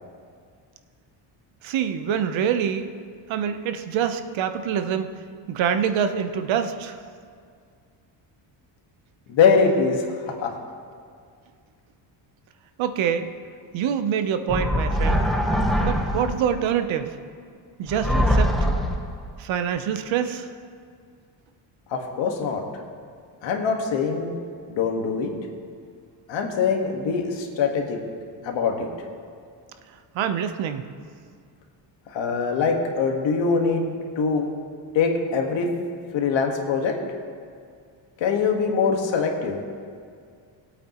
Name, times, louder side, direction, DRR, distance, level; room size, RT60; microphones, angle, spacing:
voice 1, 1.6-2.9 3.3-5.1 5.5-7.0 12.8-13.3 13.7-15.3 15.8-17.2 17.8-18.5 19.4-20.5 30.1-30.9, right 8 dB, 80° right, 9 dB, 0.9 m, -25 dB
voice 2, 9.3-10.1 10.4-10.5 21.9-22.6 23.4-24.3 24.7-25.3 26.3-28.0 28.4-28.9 32.1-33.9 34.1-34.5 34.9-35.7 36.1-37.0 38.2-39.6, left 5 dB, 75° left, 2 dB, 1.6 m, -23 dB
sound 1, 14.5-16.5 17.9-19.2, equal, ahead, 1.0 m, -22 dB
20.5 x 8.5 x 3.0 m, 2.2 s
cardioid pair, 140°, 45 cm